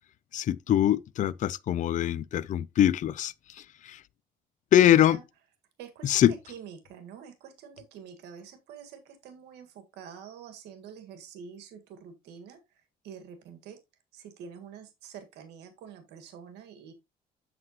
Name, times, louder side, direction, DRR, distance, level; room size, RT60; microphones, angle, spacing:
voice 1, 0.3-4.0 4.7-5.2 6.0-6.3, left 11 dB, 50° left, 0.5 m, -23 dB
voice 2, 4.8-5.2 5.8-13.8 14.1-16.9, right 7 dB, 85° right, 1.8 m, -46 dB
7.8 x 7.5 x 3.0 m
cardioid pair, 110°, 17 cm